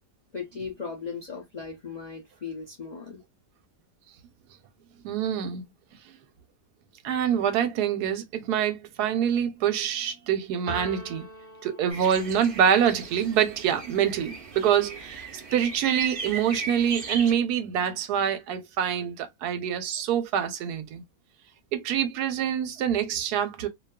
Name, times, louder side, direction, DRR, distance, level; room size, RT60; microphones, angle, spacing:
voice 1, 0.3-3.2, left 5 dB, 85° left, 0.3 m, -37 dB
voice 2, 5.0-5.6 7.0-11.3 11.6-15.3 15.5-21.0 21.7-23.7, right 9 dB, 75° right, 1.1 m, -25 dB
sound 1, 10.7-12.6, right 1 dB, 30° right, 0.9 m, -41 dB
sound 2, 11.9-17.3, right 5 dB, 55° right, 0.6 m, -37 dB
2.7 x 2.3 x 2.2 m
omnidirectional pair, 1.8 m